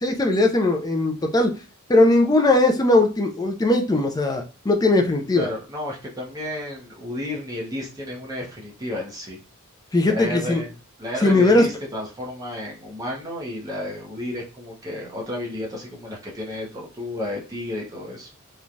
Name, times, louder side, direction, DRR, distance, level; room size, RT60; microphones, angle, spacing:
voice 1, 0.0-1.5 1.9-5.5 9.9-10.6 11.2-11.7, left 2 dB, 15° left, 3 dB, 0.3 m, -19 dB
voice 2, 5.3-9.4 10.0-10.7 11.0-18.3, left 1 dB, 15° right, -3 dB, 0.8 m, -32 dB
3.1 x 2.2 x 2.5 m, 0.33 s
head